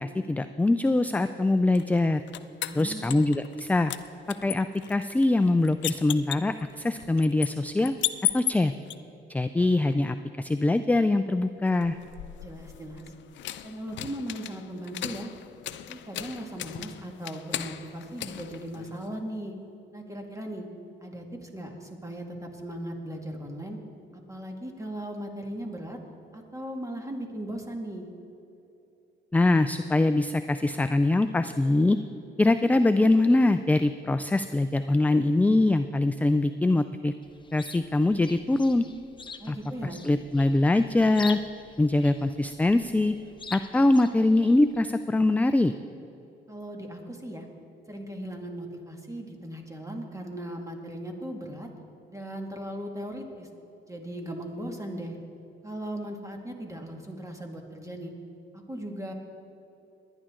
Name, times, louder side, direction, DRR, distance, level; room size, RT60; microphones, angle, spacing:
voice 1, 0.0-2.2 2.7-3.9 4.4-7.9 8.3-8.7 9.3-12.0 29.3-32.0 32.4-37.1 37.5-38.9 39.5-39.6 40.0-41.4 41.8-43.1 43.5-45.7, left 2 dB, 10° left, 10 dB, 0.3 m, -23 dB
sound 1, 1.8-3.6 3.9-9.0 11.7-19.2, left 12 dB, 70° left, 0.5 m, -36 dB
voice 2, 2.6-3.2 12.4-13.0 13.6-15.3 15.7-19.6 19.9-20.7 21.0-23.8 24.3-26.0 26.3-28.1 39.4-40.0 46.5-47.5 47.9-51.7 52.1-53.5 53.9-55.2 55.6-58.1 58.7-59.1, right 1 dB, 15° right, 2 dB, 2.1 m, -38 dB
Chirp tweet, 37.2-44.8, left 4 dB, 25° left, 0.8 m, -45 dB
21.0 x 10.0 x 3.8 m, 2.9 s
cardioid pair, 90°, 20 cm